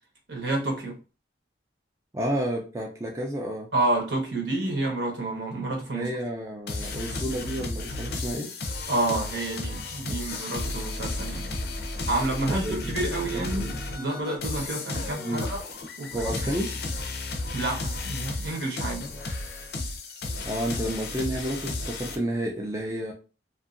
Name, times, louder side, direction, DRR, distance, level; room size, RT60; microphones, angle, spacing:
voice 1, 0.3-1.0 3.7-6.1 8.9-11.5 12.1-15.6 16.0-16.5 17.5-19.0, right 2 dB, 75° right, 1.0 m, -29 dB
voice 2, 2.1-3.7 5.9-8.5 10.0-10.2 12.5-12.9 13.5-13.8 15.2-15.4 16.1-16.7 20.4-23.1, right 1 dB, 15° right, 0.4 m, -31 dB
sound 1, 6.7-22.2, left 2 dB, 55° left, 0.5 m, -33 dB
2.7 x 2.4 x 2.5 m
head